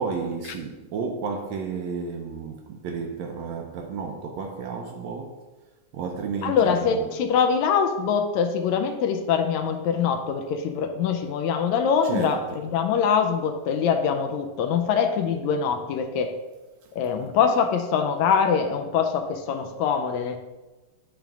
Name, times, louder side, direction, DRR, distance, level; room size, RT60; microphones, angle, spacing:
voice 1, 0.0-5.4 5.9-7.1 12.1-12.6, right 5 dB, 75° right, 1.8 m, -32 dB
voice 2, 6.4-16.3 16.9-20.4, left 6 dB, 75° left, 1.8 m, -23 dB
8.7 x 3.6 x 5.9 m
omnidirectional pair, 3.4 m